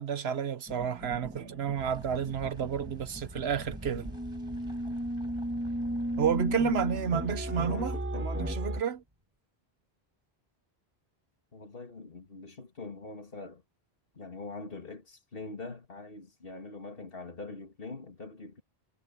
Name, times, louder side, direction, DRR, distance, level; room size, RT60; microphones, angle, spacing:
voice 1, 0.0-4.1 6.2-9.0, right 7 dB, 75° right, 1.3 m, -31 dB
sound 1, 0.7-8.8, equal, 10° right, 1.8 m, -35 dB
sound 2, 1.7-9.1, right 1 dB, 25° right, 6.4 m, -48 dB
voice 2, 7.7-8.6 11.5-13.6 14.1-18.6, left 3 dB, 60° left, 2.6 m, -43 dB
omnidirectional pair, 1.1 m